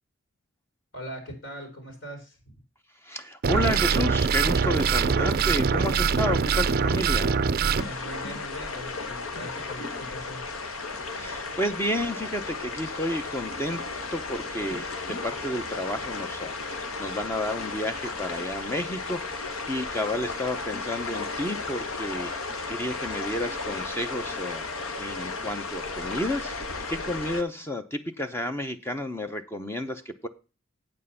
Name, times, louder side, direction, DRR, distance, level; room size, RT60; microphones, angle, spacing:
voice 1, 0.9-2.5 7.8-10.4, equal, 60° left, 2 dB, 4.0 m, -41 dB
voice 2, 3.0-7.4 11.2-13.8 14.1-22.3 22.7-24.7 25.0-26.5 26.9-30.3, left 1 dB, 10° left, 7 dB, 0.6 m, -31 dB
sound 1, 3.4-7.8, right 5 dB, 45° right, 0.4 m, -23 dB
sound 2, 7.8-27.4, left 3 dB, 90° left, 1.5 m, -34 dB
8.6 x 7.4 x 5.6 m, 0.33 s
head